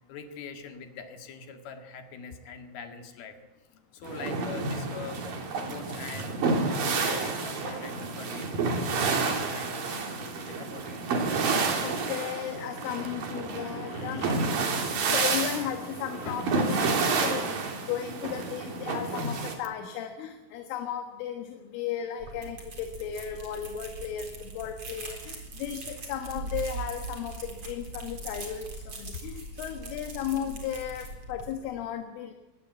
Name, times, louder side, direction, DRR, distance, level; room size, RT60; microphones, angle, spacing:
voice 1, 0.1-3.3 3.9-5.2 5.7-8.5 9.2-11.1 13.9-14.5 16.3-16.4, left 5 dB, 55° left, 5 dB, 3.4 m, -43 dB
sound 1, 4.0-19.5, right 4 dB, 50° right, 3.9 m, -30 dB
voice 2, 11.8-32.3, left 9 dB, 75° left, 5 dB, 3.9 m, -35 dB
sound 2, 22.2-31.6, right 3 dB, 30° right, 4.2 m, -41 dB
22.5 x 19.0 x 8.1 m, 1.1 s
omnidirectional pair, 6.0 m